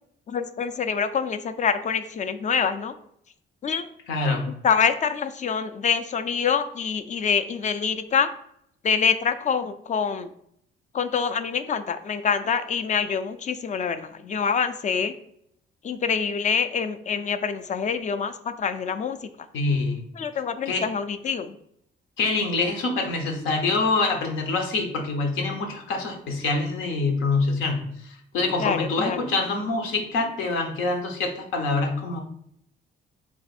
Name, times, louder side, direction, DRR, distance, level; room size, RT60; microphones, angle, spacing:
voice 1, 0.3-2.9 3.6-3.9 4.6-8.3 8.8-10.3 10.9-15.1 15.8-19.2 20.2-21.5 28.6-29.2, left 6 dB, 40° left, 9 dB, 0.4 m, -25 dB
voice 2, 4.1-4.4 19.5-20.0 20.7-20.8 22.2-32.2, left 3 dB, 90° left, 3 dB, 0.8 m, -25 dB
3.5 x 2.5 x 4.1 m, 0.72 s
cardioid pair, 90°, 20 cm